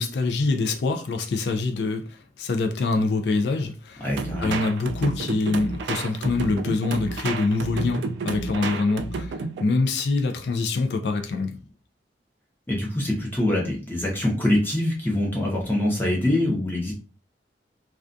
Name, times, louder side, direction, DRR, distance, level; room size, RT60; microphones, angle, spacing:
voice 1, 0.0-4.1 4.4-11.6, left 3 dB, 65° left, 0.3 m, -25 dB
voice 2, 4.0-4.6 12.7-16.9, left 1 dB, 10° left, 0.8 m, -24 dB
sound 1, 4.2-9.7, right 3 dB, 80° right, 0.3 m, -31 dB
2.3 x 2.3 x 2.5 m
head